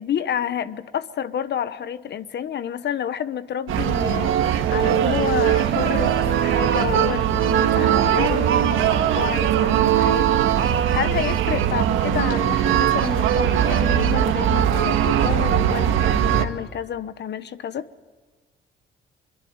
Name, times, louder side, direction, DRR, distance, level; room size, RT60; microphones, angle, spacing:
voice 1, 0.0-17.9, left 9 dB, 60° left, 1.0 m, -29 dB
sound 1, 3.7-16.4, right 10 dB, 85° right, 1.7 m, -20 dB
23.0 x 23.0 x 8.7 m
cardioid pair, 90°, 20 cm